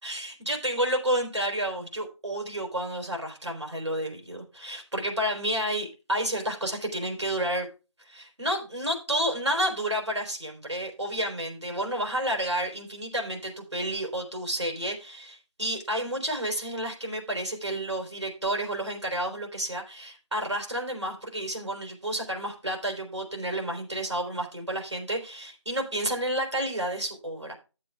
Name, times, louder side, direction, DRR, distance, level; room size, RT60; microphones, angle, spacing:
voice 1, 0.0-7.7 8.0-27.5, right 1 dB, 65° right, 2 dB, 3.9 m, -30 dB
11.5 x 7.8 x 3.5 m, 0.32 s
figure-of-eight pair, 175°, 16 cm